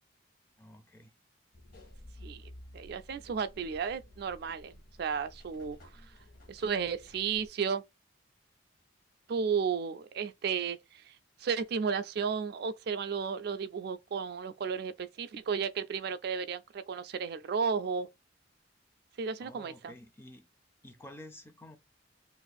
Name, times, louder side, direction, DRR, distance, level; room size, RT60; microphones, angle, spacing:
voice 1, 0.6-1.1 19.4-20.5 20.8-21.8, left 1 dB, 10° left, 0.4 m, -50 dB
sound 1, 1.5-7.5, left 1 dB, 50° left, 0.9 m, -53 dB
voice 2, 2.2-5.8 6.5-7.8 9.3-11.2 11.4-18.1 19.2-19.9, right 6 dB, 55° right, 0.3 m, -33 dB
2.5 x 2.4 x 4.0 m
head